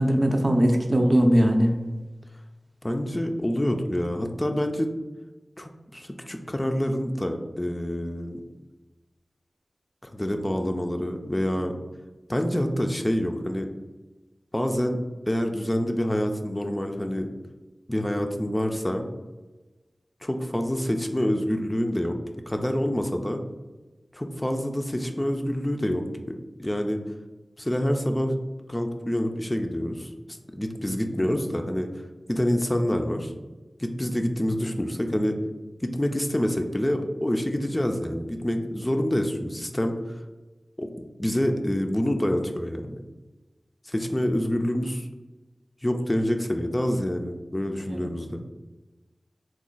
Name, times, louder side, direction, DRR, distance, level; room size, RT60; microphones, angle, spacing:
voice 1, 0.0-1.8 31.1-31.2 47.9-48.0, equal, 45° right, 3 dB, 0.5 m, -20 dB
voice 2, 2.8-4.9 5.6-8.4 10.0-11.8 12.3-13.7 14.5-17.3 17.9-19.1 20.2-22.2 22.5-23.4 24.1-27.0 27.6-28.3 28.7-31.9 32.3-33.3 33.8-35.4 35.8-40.1 40.8-40.9 41.2-43.0 43.9-45.1 45.8-48.4, equal, 20° left, 4 dB, 0.4 m, -27 dB
3.0 x 2.2 x 3.9 m, 1.2 s
cardioid pair, 40°, 0 cm